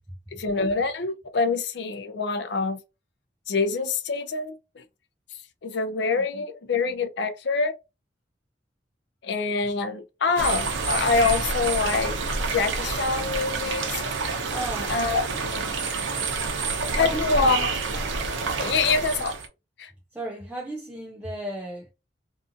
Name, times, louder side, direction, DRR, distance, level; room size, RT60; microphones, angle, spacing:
voice 1, 0.3-2.8 3.5-4.8 5.6-7.7 9.2-14.0 14.9-15.7 16.9-17.7 18.6-19.3 19.8-19.9, left 4 dB, 60° left, 0.5 m, -25 dB
sound 1, 10.4-19.5, right 4 dB, 80° right, 0.7 m, -28 dB
voice 2, 14.5-15.1 15.3-15.6 16.9-17.7 20.1-21.9, right 1 dB, 5° right, 0.4 m, -35 dB
2.6 x 2.4 x 2.5 m
head